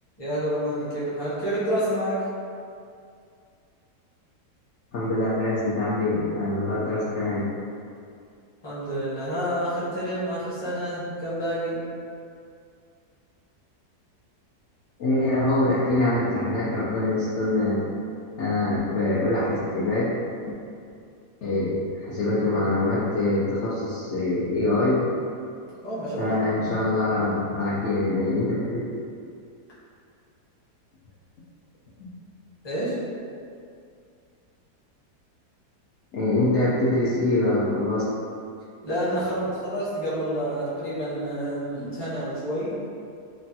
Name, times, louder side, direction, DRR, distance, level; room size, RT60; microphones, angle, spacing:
voice 1, 0.2-2.2 8.6-11.8 25.8-26.4 32.6-33.0 38.8-42.8, equal, 25° left, -10 dB, 0.5 m, -28 dB
voice 2, 4.9-7.5 15.0-17.9 18.4-20.1 21.4-25.1 26.2-28.8 36.1-38.1, left 2 dB, 80° left, -9 dB, 0.6 m, -24 dB
3.2 x 2.2 x 2.7 m, 2.4 s
omnidirectional pair, 1.8 m